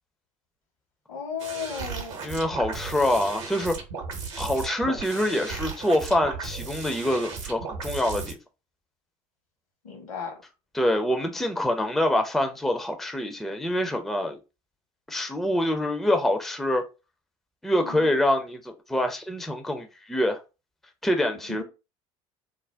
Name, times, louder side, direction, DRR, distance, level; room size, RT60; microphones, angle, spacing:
voice 1, 1.1-2.4 9.8-10.3 17.8-18.1 21.5-21.6, left 6 dB, 75° left, 1.1 m, -35 dB
sound 1, 1.4-8.3, right 5 dB, 65° right, 0.8 m, -36 dB
voice 2, 2.2-3.8 4.4-8.4 10.7-14.4 15.1-16.8 17.6-20.4 21.0-21.6, left 1 dB, ahead, 0.4 m, -25 dB
2.5 x 2.1 x 3.2 m
figure-of-eight pair, 65°, 18 cm